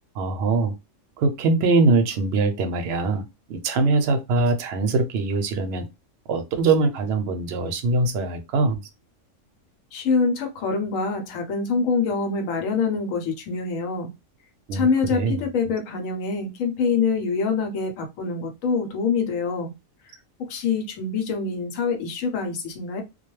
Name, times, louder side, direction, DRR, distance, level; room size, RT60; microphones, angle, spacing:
voice 1, 0.2-0.7 1.2-5.9 6.3-8.8 14.7-14.9 15.1-15.5, right 3 dB, 65° right, 0.7 m, -22 dB
voice 2, 9.9-14.1 14.7-19.7 20.5-23.0, left 4 dB, 75° left, 1.1 m, -25 dB
2.3 x 2.2 x 3.0 m
omnidirectional pair, 1.4 m